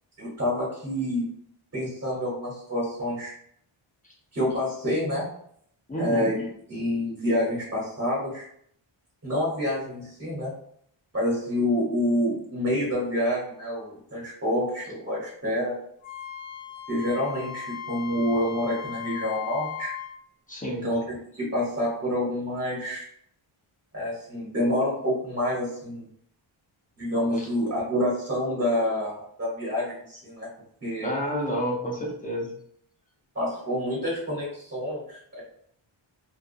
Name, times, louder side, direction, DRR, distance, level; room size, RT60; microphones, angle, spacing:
voice 1, 0.2-1.3 1.7-3.3 4.3-5.2 6.0-8.4 9.2-10.5 11.1-15.7 16.9-19.9 20.8-23.1 23.9-26.0 27.0-30.5 30.8-31.1 33.3-35.4, left 1 dB, 30° right, -7 dB, 1.2 m, -28 dB
voice 2, 5.9-6.3 20.5-20.9 27.3-27.5 31.0-32.5, equal, 15° left, -2 dB, 0.6 m, -29 dB
Wind instrument woodwind instrument, 16.0-20.1, left 8 dB, 75° left, 0.7 m, -37 dB
2.4 x 2.3 x 2.6 m, 0.67 s
wide cardioid pair, 125°, 49 cm